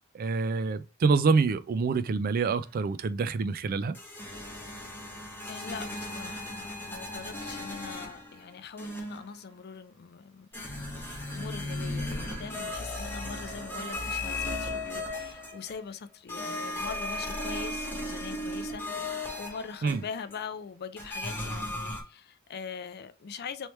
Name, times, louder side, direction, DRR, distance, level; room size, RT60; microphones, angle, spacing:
voice 1, 0.1-4.0 19.8-20.0, right 4 dB, 45° right, 0.3 m, -26 dB
sound 1, 3.9-8.4 8.8-9.3 10.5-15.9 16.3-20.4 21.0-22.0, left 1 dB, 10° left, 1.0 m, -36 dB
voice 2, 5.5-23.7, left 6 dB, 50° left, 0.4 m, -42 dB
3.2 x 3.1 x 3.0 m
head